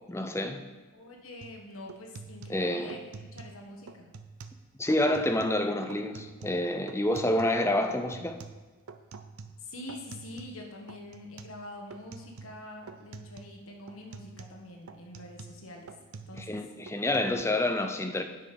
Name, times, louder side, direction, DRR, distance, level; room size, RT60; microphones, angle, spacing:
voice 1, 0.1-0.6 2.5-2.9 4.8-8.4 16.4-18.2, left 1 dB, 10° left, 6 dB, 0.6 m, -28 dB
voice 2, 0.9-3.0 3.3-4.1 9.6-15.9 16.3-16.6, left 1 dB, 70° left, 2 dB, 1.4 m, -45 dB
sound 1, 1.4-1.6 1.9-3.6 3.9-4.6 4.9-5.6 5.9-7.6 7.9-10.6 10.9-11.6 11.9-12.6 12.9-13.6 13.9-16.6 16.9-17.4, right 4 dB, 85° right, 0.6 m, -47 dB
9.5 x 6.2 x 5.2 m, 1.3 s
head